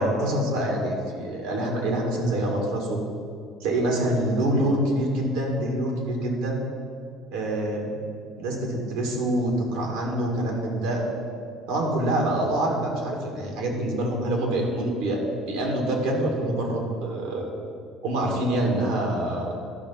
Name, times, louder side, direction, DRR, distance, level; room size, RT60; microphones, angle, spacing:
voice 1, 0.0-3.0 3.6-6.6 7.3-8.0 8.4-11.0 11.7-15.2 15.5-17.4 18.0-19.5, right 1 dB, 85° right, 1 dB, 2.2 m, -26 dB
12.5 x 5.8 x 5.7 m, 2.2 s
supercardioid pair, 90°, 0 cm